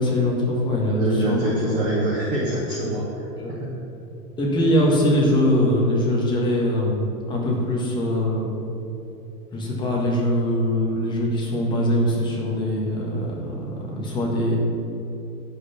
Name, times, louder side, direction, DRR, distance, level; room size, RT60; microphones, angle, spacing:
voice 1, 0.0-1.7 3.4-3.5 4.4-8.6 9.5-13.3 14.0-14.6, left 1 dB, 10° left, -3 dB, 1.5 m, -22 dB
voice 2, 0.9-3.8, right 1 dB, 10° right, -5 dB, 0.6 m, -25 dB
11.0 x 5.9 x 7.2 m, 2.9 s
hypercardioid pair, 165°, 47 cm